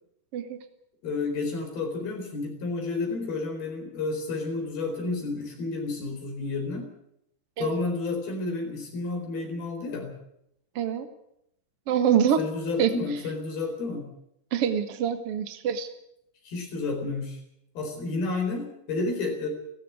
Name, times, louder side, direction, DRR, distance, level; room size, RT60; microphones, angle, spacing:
voice 1, 1.0-6.9 7.6-10.1 12.4-14.1 16.4-17.4 17.8-19.5, left 3 dB, 60° left, 4 dB, 6.0 m, -31 dB
voice 2, 10.7-11.1 11.9-12.4 12.8-12.9 14.5-15.9, right 8 dB, 60° right, 9 dB, 1.6 m, -25 dB
17.5 x 15.5 x 9.6 m, 0.77 s
omnidirectional pair, 4.9 m